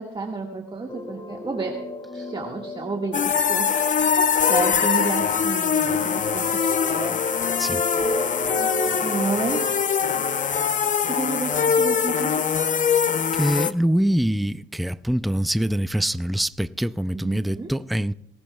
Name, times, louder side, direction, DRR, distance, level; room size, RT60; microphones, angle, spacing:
voice 1, 0.0-1.8 2.1-7.2 8.6-10.3 10.8-12.5 17.2-17.7, right 3 dB, 25° right, 1.7 m, -31 dB
sound 1, 0.9-5.7 6.1-10.6, left 1 dB, 25° left, 2.3 m, -33 dB
sound 2, 3.1-13.7, left 7 dB, 40° left, 0.6 m, -23 dB
voice 2, 13.3-18.1, equal, ahead, 0.4 m, -24 dB
19.0 x 18.5 x 2.3 m
cardioid pair, 90°, 20 cm